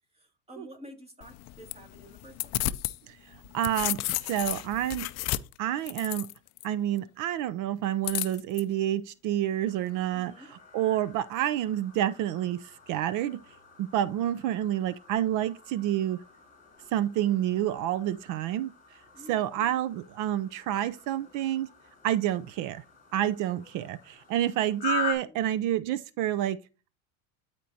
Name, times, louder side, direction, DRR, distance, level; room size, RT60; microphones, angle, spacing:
voice 1, 0.1-2.5 10.1-10.5 19.1-19.8 24.1-24.3 25.1-25.4, equal, 15° right, 2.2 m, -50 dB
sound 1, 1.2-3.0 3.3-6.6 8.0-8.6, left 18 dB, 40° left, 0.4 m, -33 dB
voice 2, 3.5-4.0 4.3-5.1 5.6-6.3 6.6-13.4 13.8-16.2 16.9-18.7 19.3-21.7 22.0-22.8 23.1-26.6, right 12 dB, 45° right, 0.5 m, -28 dB
sound 2, 9.6-25.1, left 4 dB, 20° left, 3.4 m, -42 dB
13.0 x 4.5 x 2.7 m
supercardioid pair, 130°, 42 cm